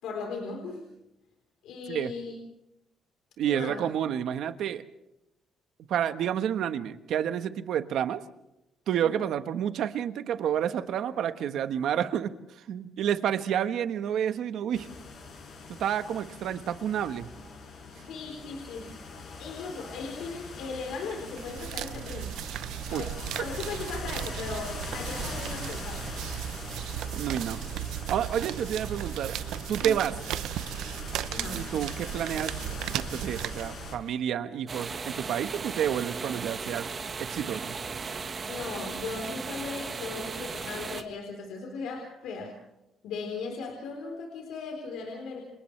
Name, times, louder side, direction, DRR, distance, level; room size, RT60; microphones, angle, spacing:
voice 1, 0.0-0.9 1.6-2.4 3.5-3.8 9.0-9.2 18.1-18.9 19.4-22.4 22.9-26.1 29.8-30.0 31.3-31.6 38.5-42.5 43.0-45.4, left 4 dB, 80° left, 2 dB, 4.0 m, -37 dB
voice 2, 3.4-4.8 5.9-8.2 8.9-12.3 12.7-14.9 15.8-17.3 22.9-23.0 23.4-23.5 27.1-27.6 28.1-29.3 29.7-30.1 31.5-32.5 32.9-36.9 37.2-37.7, right 9 dB, 65° right, 10 dB, 1.3 m, -29 dB
sound 1, 14.7-34.0, left 4 dB, 50° left, 6.0 m, -42 dB
sound 2, 21.3-34.1, right 12 dB, 90° right, 0.7 m, -36 dB
sound 3, 34.7-41.0, right 5 dB, 30° right, 1.5 m, -36 dB
29.5 x 26.5 x 3.4 m, 0.89 s
cardioid pair, 150°, 0 cm